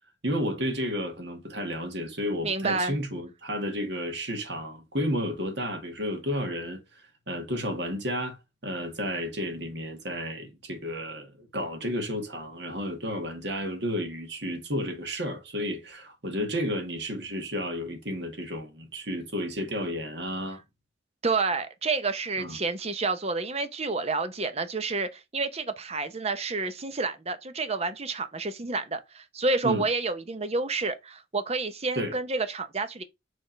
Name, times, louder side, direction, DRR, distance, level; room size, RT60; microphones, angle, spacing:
voice 1, 0.2-6.8 7.3-8.4 8.6-20.6 22.4-22.6 29.6-29.9 31.9-32.2, equal, 65° right, 1.9 m, -32 dB
voice 2, 2.4-2.9 21.2-33.0, right 3 dB, 35° right, 0.8 m, -29 dB
6.6 x 3.6 x 4.5 m
head